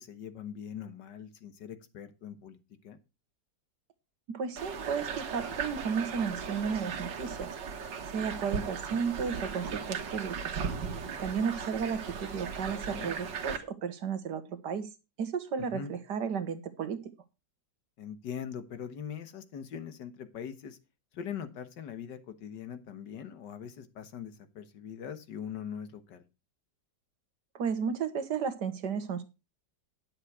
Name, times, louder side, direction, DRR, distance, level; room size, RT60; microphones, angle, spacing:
voice 1, 0.0-2.6 2.8-3.0 12.7-13.1 15.6-16.0 18.0-20.8 21.1-26.2, left 8 dB, 75° left, 11 dB, 1.9 m, -42 dB
voice 2, 4.3-7.5 8.1-10.5 11.2-14.9 15.2-17.0 27.6-29.2, right 6 dB, 70° right, 12 dB, 1.7 m, -33 dB
sound 1, 4.6-13.6, right 6 dB, 85° right, 2.0 m, -37 dB
10.5 x 7.7 x 4.8 m, 0.28 s
omnidirectional pair, 1.9 m